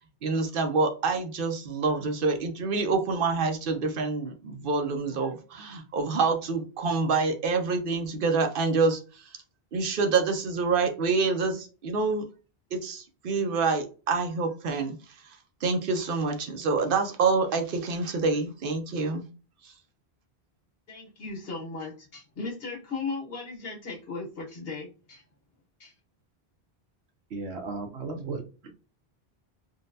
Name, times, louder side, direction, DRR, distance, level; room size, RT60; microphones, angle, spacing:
voice 1, 0.2-9.0 9.7-12.3 12.7-15.0 15.6-19.3 19.6-19.7, right 4 dB, 65° right, 6 dB, 0.8 m, -27 dB
voice 2, 20.9-25.2 25.8-25.9, left 4 dB, 70° left, -2 dB, 1.5 m, -37 dB
voice 3, 27.3-28.4, right 3 dB, 85° right, 6 dB, 1.0 m, -34 dB
3.8 x 2.2 x 2.6 m, 0.34 s
omnidirectional pair, 1.0 m